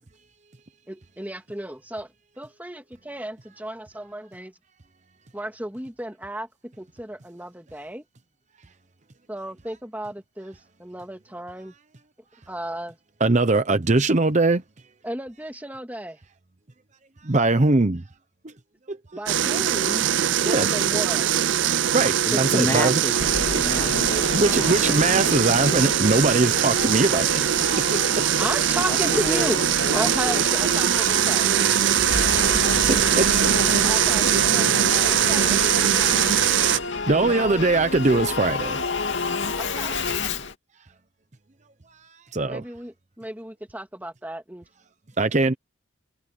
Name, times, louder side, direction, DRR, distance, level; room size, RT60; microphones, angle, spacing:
voice 1, 0.9-4.5 5.3-8.0 9.3-11.7 12.5-13.0 15.0-16.2 19.1-21.3 22.3-22.4 28.4-29.7 29.9-31.4 33.8-36.2 37.2-37.6 39.6-40.0 42.4-44.7, right 1 dB, 10° right, 2.3 m, -34 dB
voice 2, 13.2-14.6 17.2-18.1 18.4-18.5 18.9-19.0 20.4-20.7 21.9-23.0 24.3-27.5 27.9-28.2 32.3-32.6 32.9-33.5 37.1-39.0 41.9-42.6 45.2-45.5, right 2 dB, 35° right, 0.8 m, -22 dB
sound 1, 19.3-36.8, right 10 dB, 65° right, 0.5 m, -22 dB
voice 3, 22.2-23.2 23.5-24.6 28.9-29.5 29.8-30.4 30.8-32.1, left 1 dB, 10° left, 1.2 m, -32 dB
Singing / Musical instrument, 23.2-40.5, left 3 dB, 60° left, 2.5 m, -30 dB
head